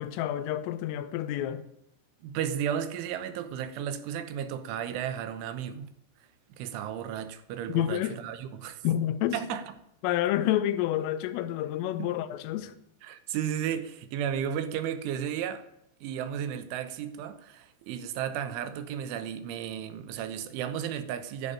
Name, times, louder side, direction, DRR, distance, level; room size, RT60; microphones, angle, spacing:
voice 1, 0.0-1.7 7.7-8.2 8.8-9.4 10.0-12.7, left 12 dB, 90° left, 3.6 m, -29 dB
voice 2, 2.2-5.9 6.6-8.8 9.3-9.6 12.0-12.1 13.0-15.6 16.0-21.5, right 9 dB, 80° right, 3.4 m, -34 dB
11.0 x 11.0 x 10.0 m
omnidirectional pair, 5.8 m